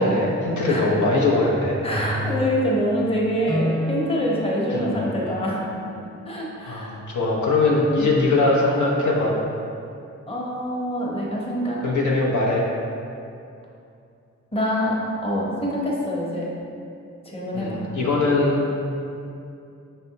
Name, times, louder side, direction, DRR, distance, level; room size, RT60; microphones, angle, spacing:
voice 1, 0.0-1.8 4.7-5.0 6.7-9.3 11.8-12.7 17.5-18.6, left 2 dB, 80° left, -3 dB, 0.7 m, -21 dB
voice 2, 1.8-5.7 6.3-7.0 8.0-8.1 10.3-11.8 14.5-15.0 15.2-16.5 17.3-17.8, equal, 20° left, -4 dB, 0.9 m, -25 dB
sound 1, 1.9-7.0 7.8-8.0, equal, 5° left, 0.4 m, -32 dB
5.4 x 3.3 x 2.8 m, 2.6 s
cardioid pair, 80°, 29 cm